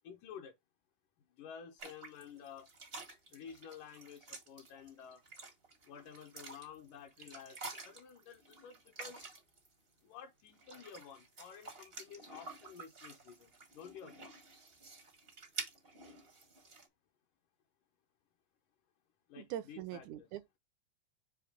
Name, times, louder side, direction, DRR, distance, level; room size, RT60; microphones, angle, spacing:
voice 1, 0.0-0.6 1.4-2.7 3.3-5.2 5.9-9.4 10.0-14.3 19.3-20.3, left 7 dB, 80° left, 2.6 m, -52 dB
sound 1, 1.8-9.7 10.4-16.9, right 3 dB, 55° right, 0.6 m, -50 dB
voice 2, 19.4-20.6, right 12 dB, 80° right, 1.8 m, -43 dB
6.9 x 2.9 x 5.0 m
omnidirectional pair, 3.8 m